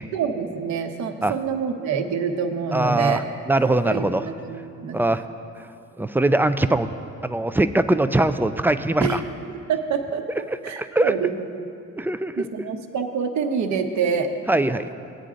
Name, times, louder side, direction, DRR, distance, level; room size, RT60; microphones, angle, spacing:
voice 1, 0.1-3.2 3.8-5.0 9.0-9.2 9.5-10.2 10.6-11.3 12.4-14.3, right 6 dB, 70° right, 5 dB, 1.0 m, -26 dB
voice 2, 2.7-4.3 4.9-5.2 6.0-6.9 7.2-9.2 10.5-11.1 12.0-12.5 14.5-14.9, right 2 dB, 5° right, 10 dB, 0.3 m, -22 dB
18.0 x 9.3 x 2.5 m, 2.6 s
cardioid pair, 90°, 30 cm